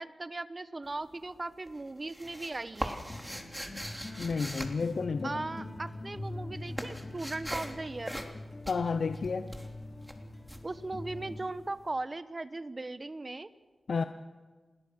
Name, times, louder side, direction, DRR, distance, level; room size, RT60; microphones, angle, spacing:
voice 1, 0.0-3.1 5.2-8.2 10.6-13.5, right 2 dB, 40° right, 13 dB, 1.2 m, -38 dB
sound 1, 0.8-1.4 1.7-5.7 6.0-11.6, equal, 5° right, 3.2 m, -41 dB
sound 2, 2.7-11.4, left 2 dB, 40° left, 3.3 m, -44 dB
voice 2, 4.2-5.3 8.7-9.5 13.9-14.0, left 4 dB, 75° left, 9 dB, 0.9 m, -31 dB
27.0 x 21.0 x 6.3 m, 1.4 s
cardioid pair, 55°, 0 cm